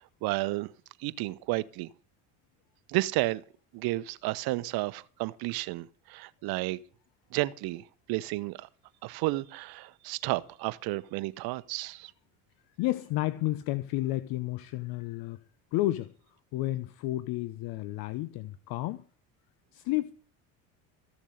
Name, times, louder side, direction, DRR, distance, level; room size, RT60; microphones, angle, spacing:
voice 1, 0.2-0.7 1.0-1.9 2.9-3.4 3.7-6.8 7.3-7.8 8.1-8.7 9.0-12.1, right 19 dB, 65° right, 1.0 m, -32 dB
voice 2, 12.8-15.4 15.7-16.1 16.5-19.0 19.7-20.1, left 16 dB, 65° left, 0.9 m, -31 dB
15.0 x 7.2 x 7.9 m
supercardioid pair, 100°, 39 cm